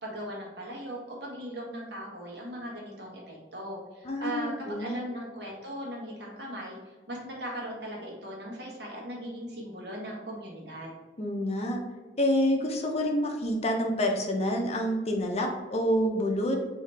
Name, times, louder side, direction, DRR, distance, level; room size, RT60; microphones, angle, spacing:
voice 1, 0.0-10.9, equal, 70° right, -2 dB, 1.3 m, -39 dB
voice 2, 4.0-5.0 11.2-11.8 12.2-16.6, equal, 35° left, 2 dB, 0.6 m, -27 dB
4.9 x 2.8 x 3.3 m, 1.3 s
head